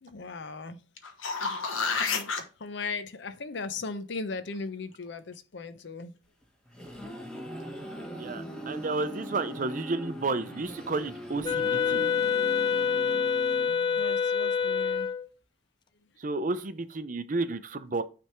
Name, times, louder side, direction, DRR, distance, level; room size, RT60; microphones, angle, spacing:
voice 1, 0.0-0.8 2.1-2.3 2.6-6.1 14.0-15.1, left 4 dB, 60° left, 0.6 m, -37 dB
sound 1, 1.0-2.4 7.2-7.3, left 4 dB, 90° left, 1.1 m, -29 dB
sound 2, 6.4-14.1, equal, 5° left, 1.2 m, -40 dB
voice 2, 8.1-12.0 16.2-18.0, right 3 dB, 40° right, 0.5 m, -32 dB
Wind instrument woodwind instrument, 11.4-15.3, left 6 dB, 25° left, 0.3 m, -26 dB
9.5 x 3.4 x 4.4 m
head